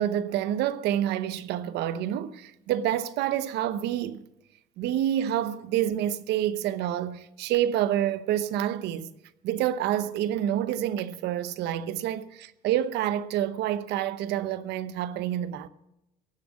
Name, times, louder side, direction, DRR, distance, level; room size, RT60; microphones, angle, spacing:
voice 1, 0.0-4.2 4.8-9.1 9.4-15.7, right 11 dB, 85° right, 0.9 m, -28 dB
17.5 x 7.5 x 7.4 m
cardioid pair, 110°, 17 cm